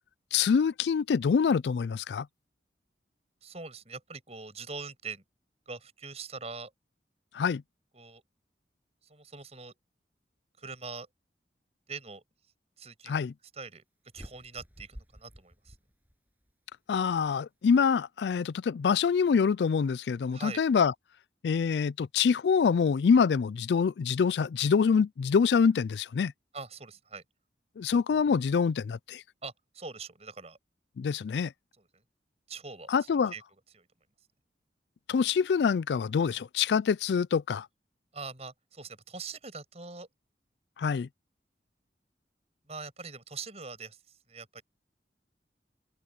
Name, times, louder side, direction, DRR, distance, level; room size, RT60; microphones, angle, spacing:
voice 1, 0.3-2.3 7.3-7.6 13.1-13.3 16.9-20.9 21.4-26.3 27.8-29.2 31.0-31.5 32.9-33.3 35.1-37.7 40.8-41.1, left 6 dB, 75° left, 0.4 m, -25 dB
voice 2, 3.4-5.2 5.7-6.7 7.9-8.2 9.0-9.8 10.6-11.1 11.9-12.2 12.8-13.2 13.5-13.8 14.1-15.8 20.3-20.6 26.5-27.2 29.4-30.6 31.8-32.0 32.5-33.4 33.7-33.9 36.3-36.4 38.1-40.1 42.6-44.6, right 4 dB, 35° right, 6.4 m, -43 dB
sound 1, 14.1-16.5, equal, 10° right, 7.0 m, -50 dB
head